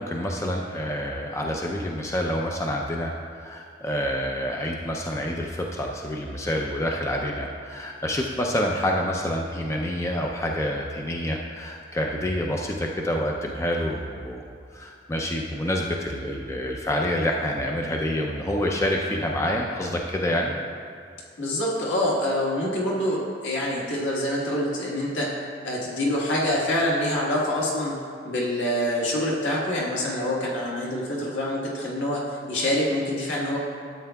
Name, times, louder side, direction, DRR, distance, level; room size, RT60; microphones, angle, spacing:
voice 1, 0.0-14.4 14.7-20.5, equal, 15° left, 0 dB, 0.4 m, -27 dB
voice 2, 21.4-25.3 25.6-27.9 28.2-32.2 32.5-33.6, left 1 dB, 90° left, -4 dB, 1.5 m, -26 dB
13.0 x 8.2 x 2.3 m, 2.3 s
head